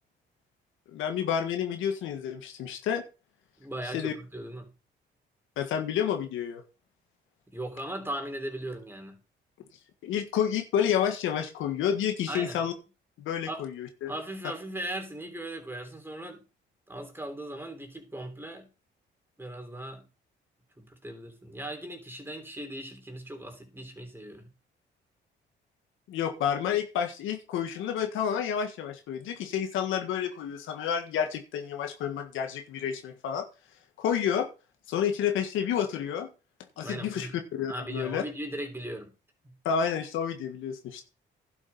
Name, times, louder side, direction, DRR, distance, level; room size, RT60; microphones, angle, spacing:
voice 1, 0.9-3.0 3.9-4.1 5.6-6.6 10.0-12.7 13.2-14.1 26.1-33.5 34.0-34.5 34.9-36.3 36.8-38.2 39.7-41.0, left 8 dB, 90° left, 1.7 m, -30 dB
voice 2, 3.6-4.7 7.5-9.2 12.3-12.6 13.5-13.7 14.1-16.4 16.9-18.7 19.4-20.1 20.8-24.5 36.8-37.3 37.7-39.1 39.4-39.5, right 1 dB, 10° right, 3.3 m, -38 dB
11.5 x 7.2 x 4.2 m
cardioid pair, 90°, 20 cm